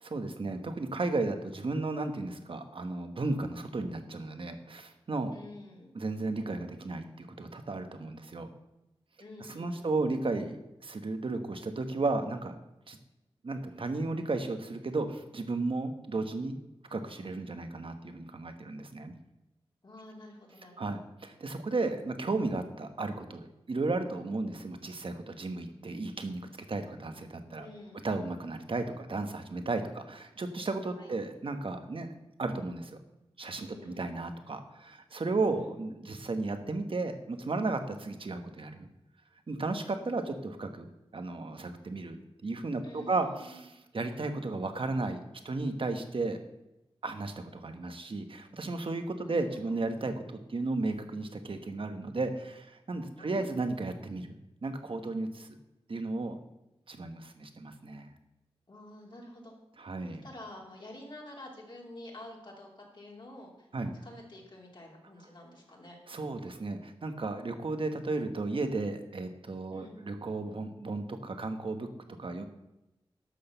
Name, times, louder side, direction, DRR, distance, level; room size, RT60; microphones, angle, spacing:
voice 1, 0.1-5.4 5.9-8.5 9.5-10.6 10.8-12.6 12.9-13.0 13.4-16.6 16.9-19.1 20.8-27.7 28.0-32.1 32.4-33.0 33.4-38.9 39.5-40.9 41.1-42.2 42.4-43.6 43.9-45.2 45.4-46.4 47.0-50.1 50.5-54.3 54.6-55.6 55.9-56.4 56.9-58.1 59.8-60.2 63.7-63.9 66.1-71.9 72.2-72.4, right 3 dB, 65° right, 7 dB, 1.3 m, -34 dB
voice 2, 5.3-6.0 9.2-9.9 19.8-21.0 24.2-24.3 27.6-28.1 30.9-31.1 33.7-34.1 35.3-35.7 42.8-43.6 49.2-49.8 53.2-53.6 58.7-59.5 60.0-63.7 64.0-66.0 69.7-70.0, left 1 dB, 50° left, -2 dB, 3.1 m, -49 dB
11.5 x 6.5 x 6.8 m, 0.94 s
wide cardioid pair, 90°, 10 cm